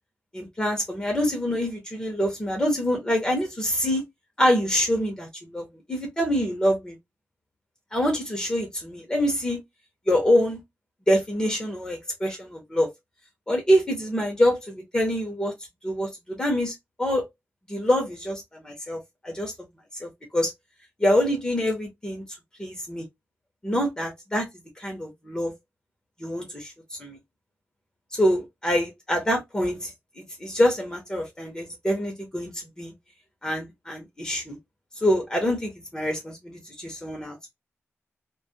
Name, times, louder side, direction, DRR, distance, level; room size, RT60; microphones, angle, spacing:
voice 1, 0.3-4.0 4.4-7.0 7.9-9.6 10.1-10.6 11.1-12.9 13.5-15.5 15.8-17.3 17.7-19.5 20.0-20.5 21.0-22.2 22.6-23.0 23.6-24.5 24.8-25.5 26.2-26.7 27.0-27.2 28.2-29.9 30.2-32.5 32.8-32.9 33.4-34.6 35.0-37.4, equal, 15° left, 0.8 m, -25 dB
2.2 x 2.2 x 2.7 m
wide cardioid pair, 165°, 5 cm